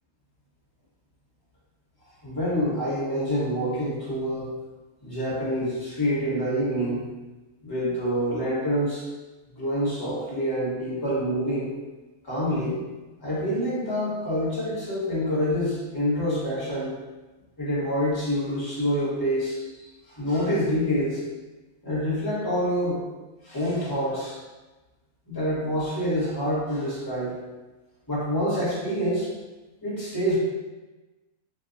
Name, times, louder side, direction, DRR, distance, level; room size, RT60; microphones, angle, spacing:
voice 1, 2.2-4.5 5.0-7.0 7.6-9.0 9.6-11.7 12.2-12.8 13.2-16.9 17.6-19.7 20.1-21.2 21.8-23.0 23.4-24.4 25.3-27.4 28.1-29.3 29.8-30.4, equal, 15° left, -8 dB, 1.0 m, -26 dB
2.9 x 2.2 x 3.8 m, 1.2 s
omnidirectional pair, 1.6 m